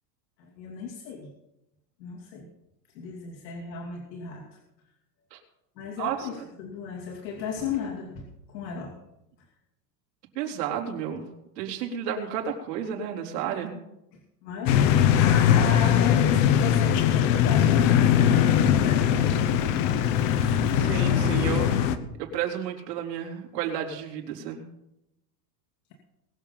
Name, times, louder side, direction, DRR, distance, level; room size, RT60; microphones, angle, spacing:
voice 1, 0.4-1.3 2.0-2.5 2.9-4.6 5.8-8.9 14.4-19.8 20.3-20.9, left 6 dB, 85° left, 0 dB, 2.8 m, -35 dB
voice 2, 6.0-6.3 10.4-11.3 11.6-13.8 20.8-21.8 22.2-24.7, right 8 dB, 75° right, 1 dB, 3.9 m, -32 dB
sound 1, 14.7-22.0, left 9 dB, 50° left, 1.1 m, -21 dB
21.5 x 7.3 x 5.7 m, 0.86 s
supercardioid pair, 170°, 50 cm